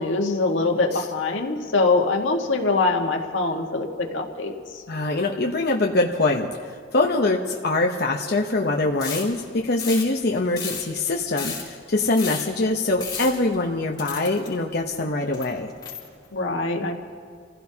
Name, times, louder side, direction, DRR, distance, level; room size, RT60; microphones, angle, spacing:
voice 1, 0.0-4.5 16.3-16.9, left 3 dB, 90° left, 2 dB, 1.7 m, -23 dB
voice 2, 4.9-15.7, left 2 dB, 55° left, 1 dB, 0.9 m, -23 dB
sound 1, 9.0-9.4 9.8-10.1 10.4-11.7 12.2-12.6 13.0-13.6 14.0-14.7 15.3-16.2, left 6 dB, 20° left, 4.8 m, -33 dB
29.5 x 16.0 x 2.9 m, 2.2 s
head